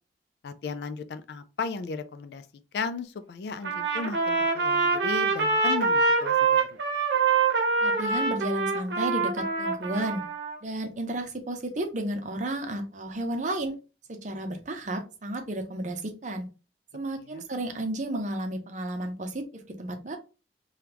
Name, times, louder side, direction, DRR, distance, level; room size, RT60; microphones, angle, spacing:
voice 1, 0.4-2.5 2.7-6.8 17.3-17.4, left 5 dB, 65° left, 0.3 m, -35 dB
Trumpet, 3.6-10.6, right 4 dB, 75° right, 0.8 m, -25 dB
voice 2, 7.8-10.2 10.6-13.7 14.1-16.5 16.9-20.2, right 1 dB, 45° right, 0.6 m, -32 dB
3.5 x 2.3 x 2.9 m
head